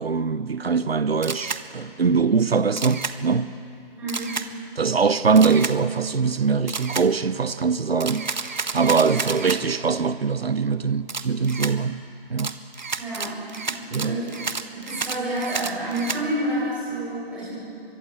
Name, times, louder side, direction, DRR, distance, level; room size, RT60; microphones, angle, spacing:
voice 1, 0.0-3.5 4.8-12.5 13.9-14.2, right 5 dB, 75° right, 1.0 m, -22 dB
Camera, 1.2-1.6 2.8-3.2 4.1-4.5 5.4-5.8 6.7-7.1 8.0-9.6 11.1-11.7 12.4-16.2, right 4 dB, 50° right, 1.4 m, -30 dB
voice 2, 4.0-4.3 9.0-9.3 13.0-13.4 13.7-14.3 14.7-17.5, right 1 dB, 5° right, 6.9 m, -29 dB
24.0 x 21.0 x 8.1 m
figure-of-eight pair, 170°, 30 cm